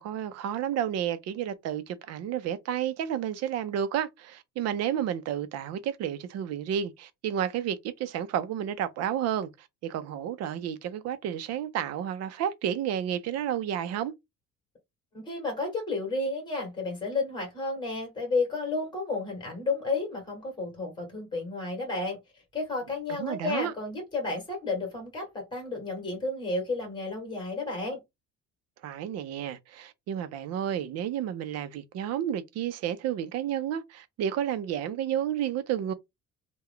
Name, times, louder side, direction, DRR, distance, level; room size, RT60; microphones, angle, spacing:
voice 1, 0.0-14.1 23.1-23.7 28.8-35.9, right 10 dB, 60° right, 0.6 m, -31 dB
voice 2, 15.1-22.2 22.5-28.0, left 3 dB, 15° left, 1.9 m, -32 dB
3.3 x 2.3 x 3.6 m
cardioid pair, 145°, 29 cm